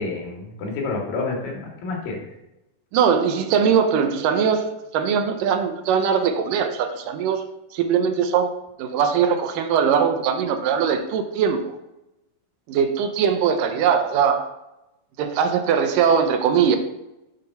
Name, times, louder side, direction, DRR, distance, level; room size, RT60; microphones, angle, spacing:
voice 1, 0.0-2.2, left 3 dB, 80° left, -1 dB, 3.7 m, -29 dB
voice 2, 2.9-7.5 7.7-8.5 8.8-11.7 12.7-14.5 15.2-16.8, right 7 dB, 80° right, 7 dB, 2.3 m, -21 dB
7.6 x 5.4 x 5.6 m, 0.93 s
omnidirectional pair, 4.0 m